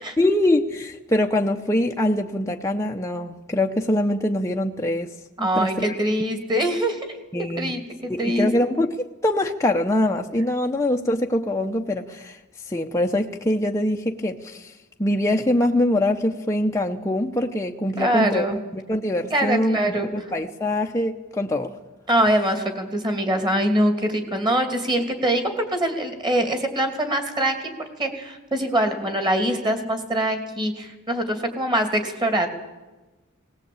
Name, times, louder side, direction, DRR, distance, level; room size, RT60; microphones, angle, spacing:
voice 1, 0.2-5.1 5.4-6.0 7.3-7.7 8.1-12.4 12.7-14.7 15.0-18.5 18.7-21.7, left 1 dB, 15° left, 1 dB, 0.8 m, -23 dB
voice 2, 5.4-7.0 7.6-8.5 18.0-18.6 19.3-20.1 22.1-32.5, right 1 dB, 20° right, 6 dB, 2.7 m, -23 dB
19.0 x 18.5 x 8.7 m, 1.1 s
head